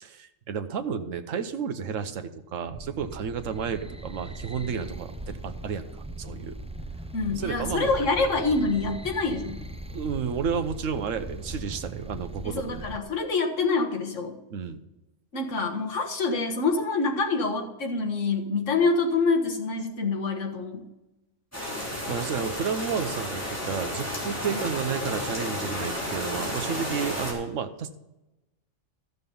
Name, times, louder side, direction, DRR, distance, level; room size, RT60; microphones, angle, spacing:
voice 1, 0.0-6.5 7.3-7.9 9.9-12.9 14.5-14.8 21.8-28.0, right 6 dB, 75° right, 9 dB, 1.2 m, -32 dB
sound 1, 2.7-13.0, right 1 dB, 10° right, 0.4 m, -39 dB
voice 2, 7.1-9.6 12.4-14.4 15.3-20.8, left 3 dB, 70° left, 2 dB, 1.8 m, -26 dB
sound 2, 21.5-27.3, left 1 dB, 10° left, 3.5 m, -32 dB
13.5 x 6.8 x 5.4 m, 0.99 s
omnidirectional pair, 1.3 m